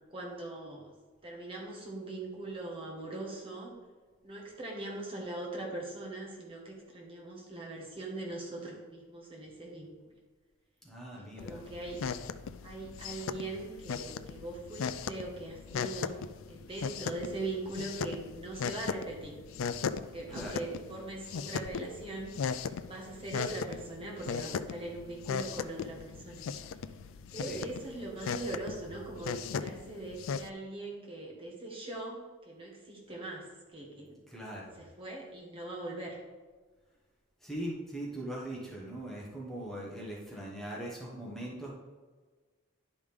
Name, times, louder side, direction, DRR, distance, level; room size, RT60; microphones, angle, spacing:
voice 1, 0.1-0.8 1.2-3.7 4.2-10.0 11.1-12.1 12.6-16.2 16.5-19.4 20.0-26.4 27.3-33.4 33.7-34.2 34.8-36.2, right 2 dB, 25° right, -2 dB, 1.3 m, -41 dB
voice 2, 10.8-11.6 20.3-20.6 26.6-26.7 27.3-27.7 34.3-34.8 37.4-41.7, right 1 dB, ahead, -5 dB, 1.3 m, -41 dB
sound 1, 11.4-30.5, left 6 dB, 70° left, 0.4 m, -38 dB
11.0 x 5.1 x 3.5 m, 1.4 s
head